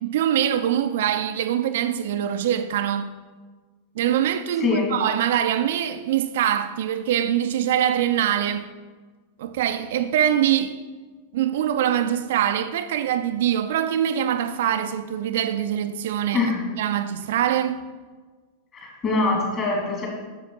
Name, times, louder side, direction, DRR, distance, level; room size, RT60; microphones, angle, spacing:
voice 1, 0.0-3.1 4.0-8.7 9.4-10.8 11.3-16.5 16.8-17.8, right 10 dB, 55° right, 0.3 m, -23 dB
voice 2, 18.7-20.1, left 3 dB, 30° left, 2.4 m, -23 dB
7.6 x 6.6 x 3.8 m
figure-of-eight pair, 90°, 0 cm